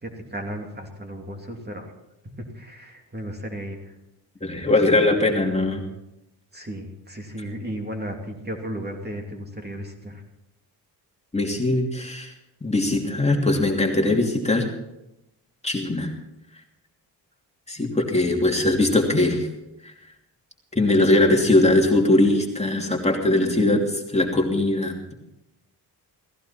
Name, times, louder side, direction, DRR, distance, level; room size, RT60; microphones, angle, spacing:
voice 1, 0.0-1.9 2.2-3.9 6.5-10.2, equal, 25° right, 3 dB, 2.9 m, -35 dB
voice 2, 4.4-5.8 11.3-12.3 12.6-14.7 15.6-16.1 17.7-19.5 19.8-19.9 20.8-25.1, left 2 dB, 15° left, 1 dB, 2.8 m, -21 dB
17.5 x 15.5 x 4.4 m, 0.91 s
cardioid pair, 70°, 40 cm